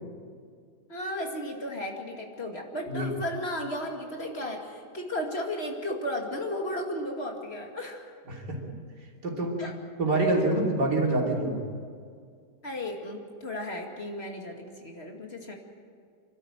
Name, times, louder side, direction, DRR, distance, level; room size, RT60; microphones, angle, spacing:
voice 1, 0.9-8.1 9.6-9.7 12.6-15.5, left 1 dB, 40° left, 1 dB, 2.6 m, -34 dB
voice 2, 8.3-8.6 9.2-9.6 10.0-11.6, right 2 dB, 90° right, -1 dB, 3.8 m, -26 dB
27.0 x 12.5 x 8.9 m, 2.1 s
omnidirectional pair, 1.7 m